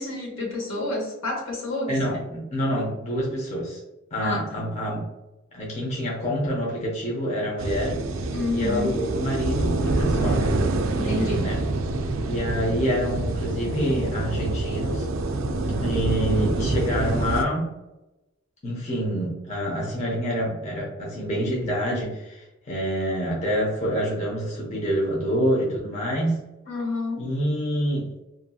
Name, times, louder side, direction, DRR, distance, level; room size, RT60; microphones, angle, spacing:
voice 1, 0.0-2.0 4.2-4.5 8.3-8.9 10.9-11.4 26.7-27.3, left 2 dB, 70° left, -2 dB, 1.0 m, -29 dB
voice 2, 1.9-3.8 4.1-5.0 5.5-10.5 11.0-11.6 12.2-15.1 15.8-17.7 18.6-26.4 27.2-28.1, equal, 35° left, -4 dB, 0.7 m, -27 dB
sound 1, 7.6-17.5, right 2 dB, 65° right, 0.3 m, -26 dB
2.7 x 2.7 x 2.3 m, 0.97 s
head